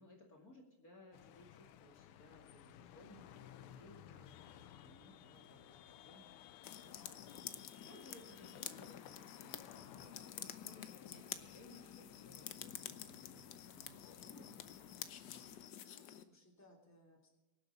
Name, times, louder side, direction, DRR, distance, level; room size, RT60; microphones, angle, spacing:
voice 1, 0.0-14.4 14.8-15.5, left 1 dB, 40° left, -1 dB, 2.7 m, -61 dB
sound 1, 1.1-15.7, left 11 dB, 85° left, 1.6 m, -58 dB
sound 2, 6.6-16.2, left 10 dB, 65° left, 1.2 m, -50 dB
voice 2, 10.1-10.7 13.9-14.9 16.1-17.3, equal, 5° left, -1 dB, 2.7 m, -66 dB
23.5 x 7.9 x 5.4 m, 1.1 s
omnidirectional pair, 2.4 m